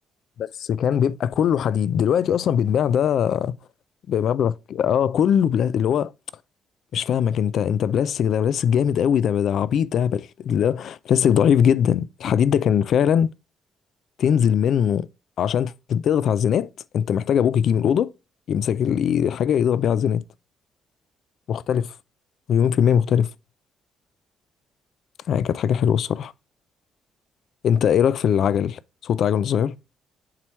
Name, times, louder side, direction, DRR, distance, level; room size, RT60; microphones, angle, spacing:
voice 1, 0.4-3.5 4.1-6.1 6.9-13.3 14.2-15.1 15.4-16.7 16.9-18.1 18.5-20.2 21.5-21.9 22.5-23.3 25.3-26.3 27.6-29.8, left 8 dB, 65° left, 0.3 m, -21 dB
7.4 x 3.1 x 4.3 m
supercardioid pair, 75°, 0 cm